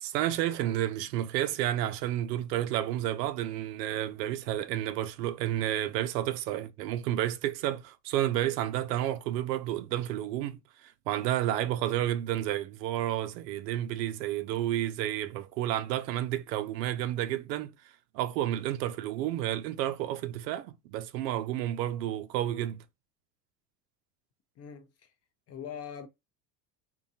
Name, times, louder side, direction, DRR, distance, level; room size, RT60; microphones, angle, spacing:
voice 1, 0.0-10.6 11.1-17.7 18.1-22.8, right 12 dB, 75° right, 0.6 m, -31 dB
voice 2, 24.6-25.1 25.5-26.1, left 8 dB, 30° left, 0.5 m, -42 dB
2.7 x 2.2 x 2.7 m
hypercardioid pair, 90°, 50 cm